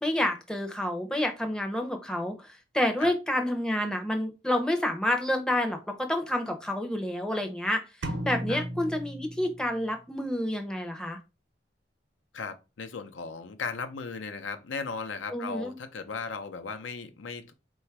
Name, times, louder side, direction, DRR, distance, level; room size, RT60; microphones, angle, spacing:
voice 1, 0.0-2.4 2.7-7.8 8.2-11.2 15.3-15.8, left 1 dB, 5° left, 0.5 m, -29 dB
sound 1, 8.0-9.9, right 1 dB, 85° right, 0.8 m, -35 dB
voice 2, 12.3-17.5, left 4 dB, 85° left, 0.6 m, -36 dB
4.0 x 2.3 x 4.5 m
head